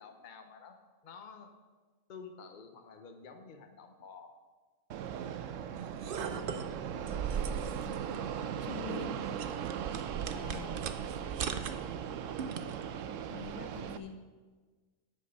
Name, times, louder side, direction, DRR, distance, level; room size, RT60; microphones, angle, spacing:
voice 1, 0.0-1.5 2.1-4.3, left 5 dB, 40° left, 5 dB, 0.9 m, -50 dB
Fixed-wing aircraft airplane, 4.9-14.0, right 8 dB, 75° right, 0.9 m, -39 dB
sound 1, 5.7-12.8, right 6 dB, 55° right, 0.7 m, -40 dB
voice 2, 6.3-6.9 7.3-8.1 8.6-9.2 10.3-10.9 13.3-14.2, left 5 dB, 65° left, 5 dB, 1.4 m, -46 dB
10.0 x 8.8 x 5.3 m, 1.4 s
omnidirectional pair, 1.4 m